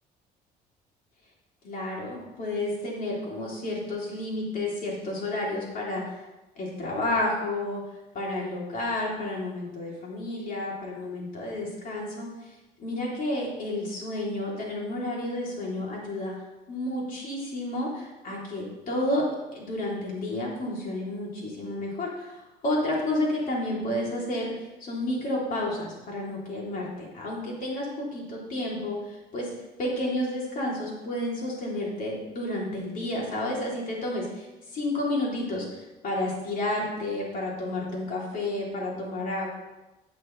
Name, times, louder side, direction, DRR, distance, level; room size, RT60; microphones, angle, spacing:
voice 1, 1.6-6.2 6.6-7.8 8.1-12.5 12.8-16.3 16.7-19.2 19.5-29.5 29.8-35.7 36.0-39.5, left 1 dB, 55° left, -3 dB, 3.3 m, -31 dB
11.5 x 7.6 x 3.3 m, 1.1 s
cardioid pair, 110°, 17 cm